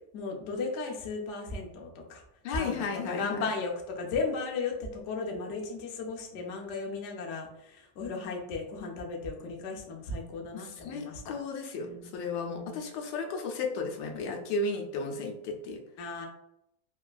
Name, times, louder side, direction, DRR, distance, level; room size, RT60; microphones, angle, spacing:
voice 1, 0.1-2.2 2.5-11.4 11.8-12.1 12.5-12.8 14.1-14.2 16.0-16.3, left 4 dB, 70° left, 1 dB, 0.7 m, -35 dB
voice 2, 2.4-3.5 10.5-15.8, left 3 dB, 90° left, 3 dB, 1.2 m, -34 dB
3.1 x 2.2 x 2.4 m, 0.79 s
omnidirectional pair, 1.9 m